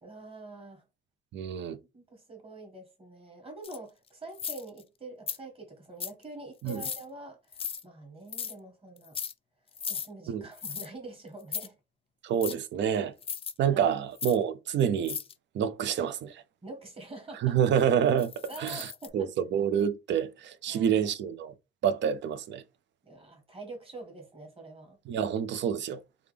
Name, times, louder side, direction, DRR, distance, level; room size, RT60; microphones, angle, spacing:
voice 1, 0.0-0.8 1.9-9.2 9.9-11.8 13.7-14.0 16.6-17.6 18.5-19.3 20.7-21.1 23.0-25.0, right 2 dB, 30° right, 1.6 m, -45 dB
voice 2, 1.3-1.8 6.6-6.8 10.3-10.4 12.2-13.1 13.6-15.2 15.5-16.4 17.4-18.3 18.6-18.9 19.1-21.5 21.8-22.6 25.1-26.0, right 8 dB, 65° right, 0.5 m, -27 dB
sound 1, 3.6-3.8 4.3-4.8 5.3-5.4 6.0-6.2 6.7-7.0 7.5-7.8 8.3-8.5 9.0-9.3 9.8-10.1 10.6-10.9 11.4-11.7 12.4-12.6 13.2-13.5 14.2-14.4 15.0-15.3 18.2-19.1, left 7 dB, 30° left, 0.3 m, -36 dB
3.4 x 2.4 x 3.3 m
cardioid pair, 90°, 20 cm